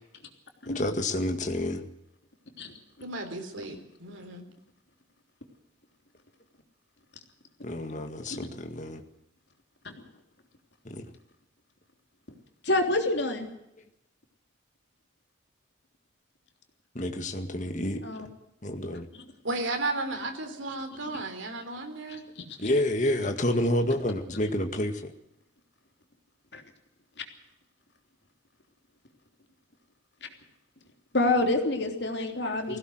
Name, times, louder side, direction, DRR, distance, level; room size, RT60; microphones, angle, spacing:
voice 1, 0.7-1.9 7.6-9.0 10.9-11.1 16.9-18.0 18.6-19.1 22.6-25.1 32.7-32.8, left 1 dB, 40° left, 6 dB, 1.9 m, -29 dB
voice 2, 3.0-4.4 19.4-22.2, right 2 dB, 85° right, 6 dB, 3.7 m, -34 dB
voice 3, 12.6-13.5 18.0-18.3 21.1-21.3 22.1-22.2 26.5-26.6 31.1-32.8, left 2 dB, 60° left, 4 dB, 3.3 m, -27 dB
20.0 x 16.5 x 7.9 m, 0.84 s
head